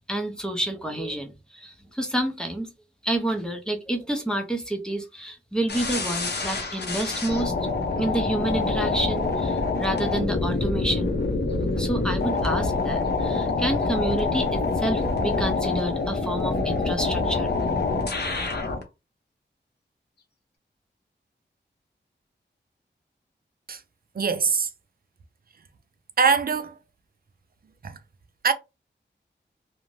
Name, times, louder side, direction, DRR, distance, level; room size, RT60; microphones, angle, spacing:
voice 1, 0.1-2.7 3.0-7.5 8.0-11.2 11.8-17.5, right 1 dB, 5° left, 0.6 m, -29 dB
sound 1, 5.7-18.8, left 3 dB, 60° left, 0.7 m, -26 dB
voice 2, 24.1-24.7 26.2-26.8 27.8-28.0 28.4-28.5, right 5 dB, 50° right, 0.5 m, -22 dB
2.5 x 2.1 x 3.1 m
wide cardioid pair, 105°, 19 cm